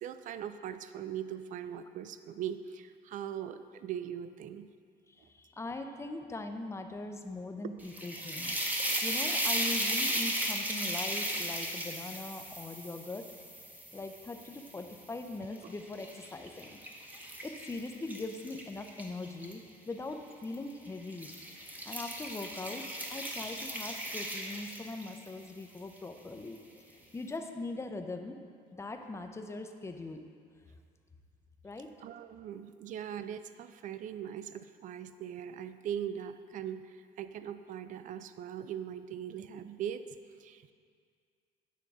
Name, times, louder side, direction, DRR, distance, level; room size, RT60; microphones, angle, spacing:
voice 1, 0.0-4.7 7.6-7.7 32.0-40.0 40.4-40.7, right 9 dB, 50° right, 12 dB, 0.4 m, -40 dB
voice 2, 5.1-8.6 9.0-13.3 13.9-16.8 17.4-21.3 21.8-28.4 28.7-30.2 31.6-31.9, left 2 dB, 15° left, 6 dB, 0.6 m, -41 dB
sound 1, 7.8-15.0 15.6-19.5 20.4-20.7 21.1-25.3, right 1 dB, 10° right, 0.9 m, -36 dB
9.2 x 3.7 x 6.1 m, 2.1 s
cardioid pair, 110°, 17 cm